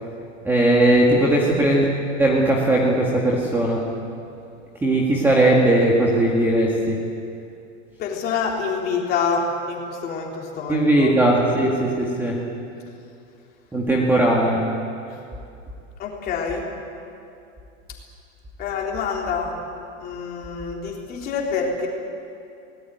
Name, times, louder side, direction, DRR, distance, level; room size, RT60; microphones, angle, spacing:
voice 1, 0.4-1.9 2.2-3.9 4.8-7.0 10.7-12.5 13.7-14.7, right 1 dB, 5° right, -3 dB, 1.8 m, -18 dB
voice 2, 8.0-9.4 9.7-11.1 16.0-16.7 18.6-19.6 20.0-21.9, left 5 dB, 25° left, -1 dB, 3.4 m, -26 dB
23.0 x 19.0 x 9.2 m, 2.6 s
supercardioid pair, 175°, 38 cm